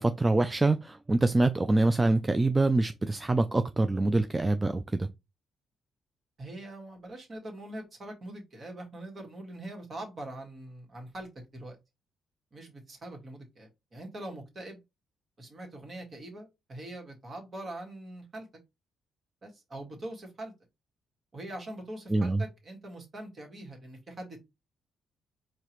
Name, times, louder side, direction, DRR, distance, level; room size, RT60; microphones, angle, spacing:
voice 1, 0.0-5.1 22.1-22.4, right 2 dB, 20° right, 0.3 m, -25 dB
voice 2, 6.4-11.8 12.5-14.8 15.4-18.5 19.4-20.5 21.3-24.4, right 1 dB, 40° right, 1.9 m, -43 dB
4.8 x 2.9 x 3.0 m
cardioid pair, 90°, 0 cm